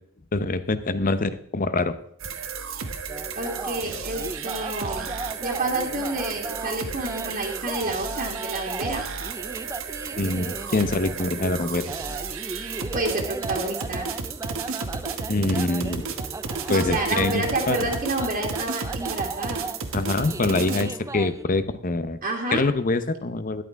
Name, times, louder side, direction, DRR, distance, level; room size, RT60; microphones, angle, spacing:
voice 1, 0.3-2.0 10.2-11.8 15.3-16.0 16.7-17.8 19.9-22.2 22.5-23.6, left 2 dB, 40° left, 12 dB, 0.8 m, -25 dB
sound 1, 2.2-20.9, right 5 dB, 70° right, 1.2 m, -33 dB
sound 2, 3.1-21.4, right 3 dB, 15° right, 0.3 m, -37 dB
voice 2, 3.4-5.1 5.4-9.0 12.9-14.1 16.7-19.7 22.2-22.6, right 2 dB, 45° right, -3 dB, 2.1 m, -29 dB
13.0 x 11.0 x 3.6 m, 0.69 s
head